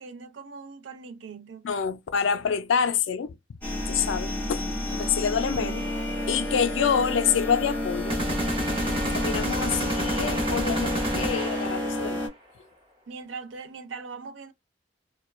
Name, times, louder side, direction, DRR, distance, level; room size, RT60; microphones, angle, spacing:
voice 1, 0.0-1.7 5.3-6.0 13.1-14.5, right 5 dB, 80° right, 0.5 m, -41 dB
voice 2, 1.6-3.3 3.9-4.7 4.9-5.8 6.3-8.2 9.1-12.2, left 7 dB, 90° left, 0.4 m, -27 dB
sound 1, 3.6-12.3, left 1 dB, 10° left, 0.8 m, -30 dB
sound 2, 8.1-12.0, right 1 dB, 30° right, 0.9 m, -30 dB
2.2 x 2.2 x 3.0 m
head